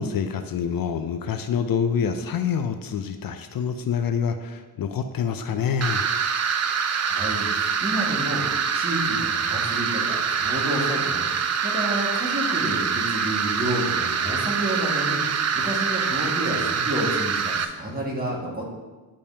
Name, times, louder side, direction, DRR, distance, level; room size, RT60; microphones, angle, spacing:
voice 1, 0.0-6.1, left 7 dB, 60° left, 8 dB, 0.5 m, -26 dB
Hourglass Sand, 5.8-17.6, right 6 dB, 40° right, 0.5 m, -25 dB
voice 2, 6.9-8.4 8.7-18.7, equal, 20° right, -3 dB, 1.8 m, -30 dB
10.0 x 5.3 x 2.8 m, 1.3 s
wide cardioid pair, 115°, 40 cm